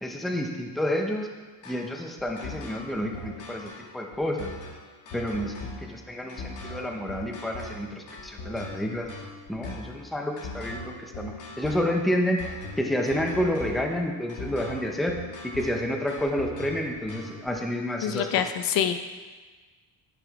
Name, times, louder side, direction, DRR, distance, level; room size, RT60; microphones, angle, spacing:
voice 1, 0.0-1.3 1.7-4.5 5.1-9.1 9.5-15.2 15.4-18.3, equal, ahead, 2 dB, 0.6 m, -29 dB
sound 1, 1.6-17.5, left 2 dB, 70° left, 2.1 m, -40 dB
voice 2, 18.0-19.0, left 9 dB, 55° left, 9 dB, 0.6 m, -25 dB
10.5 x 6.1 x 4.6 m, 1.4 s
cardioid pair, 165°, 41 cm